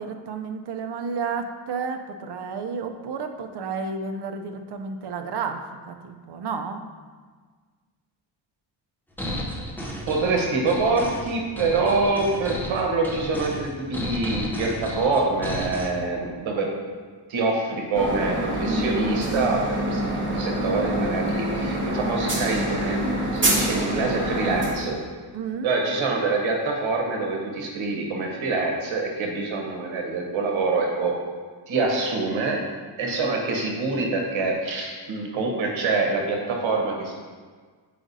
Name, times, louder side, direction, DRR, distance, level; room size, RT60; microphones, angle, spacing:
voice 1, 0.0-6.8 25.3-25.7, right 5 dB, 55° right, 6 dB, 0.6 m, -31 dB
sound 1, 9.2-15.9, equal, 5° left, 0.6 m, -33 dB
voice 2, 10.1-16.7 17.3-19.6 19.9-23.1 23.3-25.0 25.6-31.2 31.7-32.6 33.0-37.1, right 3 dB, 75° right, 0 dB, 1.1 m, -25 dB
sound 2, 17.9-24.7, right 1 dB, 25° right, 1.1 m, -26 dB
7.7 x 5.0 x 2.6 m, 1.5 s
cardioid pair, 140°, 47 cm